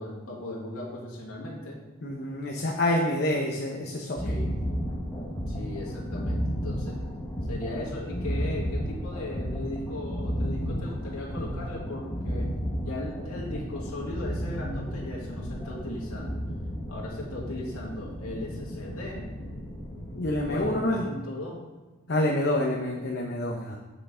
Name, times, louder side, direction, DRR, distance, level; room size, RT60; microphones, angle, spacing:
voice 1, 0.0-1.8 4.2-4.6 5.5-7.0 7.5-16.4 16.9-19.3 20.4-21.6, left 1 dB, 80° left, -4 dB, 2.3 m, -37 dB
voice 2, 2.0-4.3 20.2-21.0 22.1-23.8, left 1 dB, 50° left, -1 dB, 0.7 m, -27 dB
sound 1, 4.2-20.8, equal, 15° left, 1.1 m, -33 dB
7.9 x 6.6 x 3.7 m, 1.2 s
head